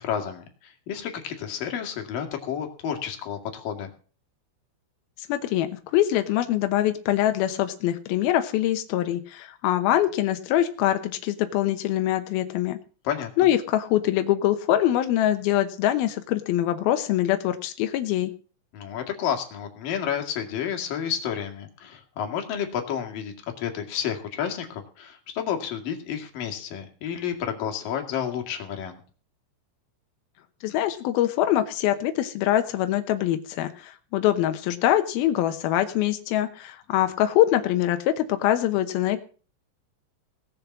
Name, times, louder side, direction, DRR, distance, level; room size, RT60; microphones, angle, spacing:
voice 1, 0.0-3.9 13.0-13.3 18.7-29.0, left 8 dB, 55° left, 4 dB, 3.1 m, -31 dB
voice 2, 5.3-12.8 13.4-18.3 30.6-39.2, left 13 dB, 85° left, 8 dB, 2.1 m, -24 dB
18.5 x 7.0 x 7.2 m, 0.39 s
omnidirectional pair, 5.9 m